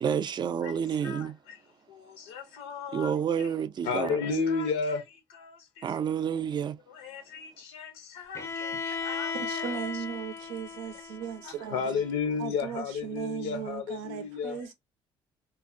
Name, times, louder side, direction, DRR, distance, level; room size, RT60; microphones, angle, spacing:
voice 1, 0.0-1.3 2.9-4.2 5.8-6.8, right 8 dB, 40° right, 0.3 m, -29 dB
voice 2, 1.0-1.6 1.9-3.1 3.8-5.9 6.9-9.8 11.4-14.6, left 5 dB, 85° left, 0.6 m, -33 dB
Bowed string instrument, 8.3-12.2, left 4 dB, 25° left, 0.5 m, -36 dB
voice 3, 9.0-12.0 12.4-14.7, right 8 dB, 90° right, 0.6 m, -37 dB
2.5 x 2.0 x 2.5 m
supercardioid pair, 70°, 12 cm